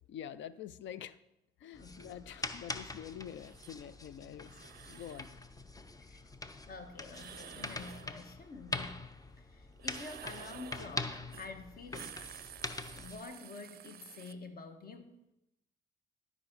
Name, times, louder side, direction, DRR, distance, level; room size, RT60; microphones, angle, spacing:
voice 1, 0.1-1.2 1.6-4.6 4.9-5.3, left 9 dB, 70° left, 17 dB, 0.5 m, -46 dB
sound 1, 1.7-13.2, left 2 dB, 20° left, 0.6 m, -44 dB
sound 2, 3.4-3.7 4.4-5.3 7.1-8.1 9.8-10.9 11.3-11.5 11.8-14.3, right 10 dB, 50° right, 0.4 m, -51 dB
voice 2, 6.7-9.0 9.4-12.4 12.9-15.1, left 3 dB, 50° left, 7 dB, 1.2 m, -48 dB
11.5 x 4.9 x 5.2 m, 0.90 s
cardioid pair, 90°, 20 cm